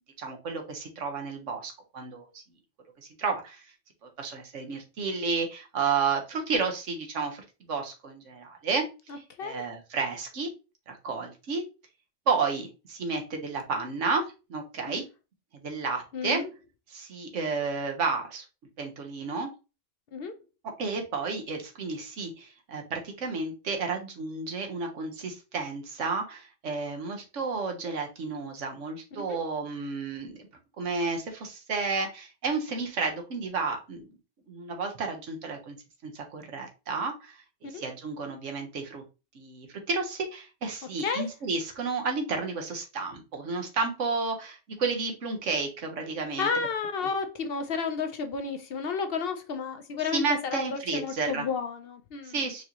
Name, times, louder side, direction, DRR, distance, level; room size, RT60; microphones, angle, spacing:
voice 1, 0.2-2.4 3.0-3.7 4.0-10.5 10.9-11.6 12.3-15.0 15.5-16.4 16.9-18.4 18.8-19.5 20.8-30.4 30.8-34.1 34.5-35.8 36.0-37.4 37.7-39.0 39.3-46.5 50.1-51.5 52.2-52.6, right 4 dB, 80° right, 1.3 m, -32 dB
voice 2, 16.1-16.5 20.1-20.3 29.3-29.4 37.7-37.8 41.0-41.3 46.4-52.4, left 5 dB, 60° left, 0.7 m, -31 dB
4.7 x 2.7 x 2.9 m
omnidirectional pair, 1.2 m